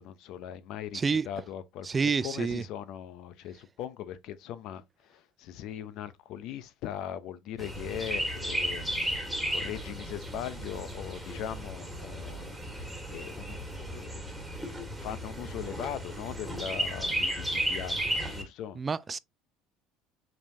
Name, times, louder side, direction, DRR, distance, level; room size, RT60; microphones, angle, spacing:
voice 1, 0.0-1.9 2.2-14.2 14.6-14.7 15.0-18.8, left 10 dB, 65° left, 0.6 m, -40 dB
voice 2, 0.9-1.3 1.8-2.6 18.8-19.2, right 5 dB, 25° right, 0.3 m, -28 dB
Chirp tweet, 7.6-18.4, right 1 dB, 5° right, 1.6 m, -34 dB
5.2 x 3.5 x 2.6 m
supercardioid pair, 90°, 0 cm